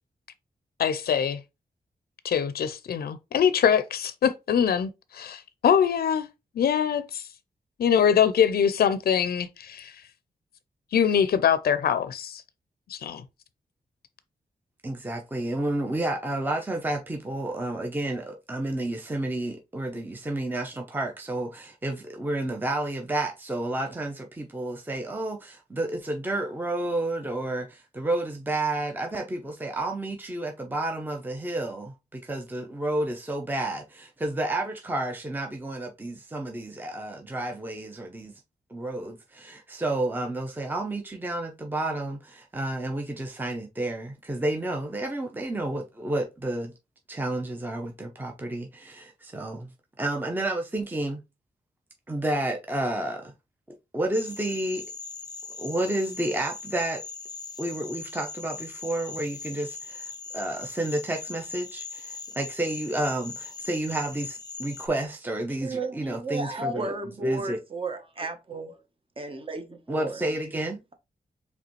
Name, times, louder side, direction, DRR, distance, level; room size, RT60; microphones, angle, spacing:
voice 1, 0.8-1.4 2.2-6.3 6.6-7.3 7.8-10.0 10.9-12.4 12.9-13.2, left 8 dB, 75° left, 0.4 m, -23 dB
voice 2, 14.8-38.3 38.7-46.7 47.1-49.7 50.0-51.2 52.1-53.3 53.9-54.8 55.6-57.0 57.6-66.9 67.2-67.6 69.9-70.8, right 1 dB, 10° right, 0.7 m, -30 dB
sound 1, 54.1-64.9, left 4 dB, 25° left, 0.7 m, -40 dB
voice 3, 65.6-68.8 69.2-70.2, right 2 dB, 35° right, 1.0 m, -33 dB
4.9 x 3.4 x 3.1 m
wide cardioid pair, 110°, 16 cm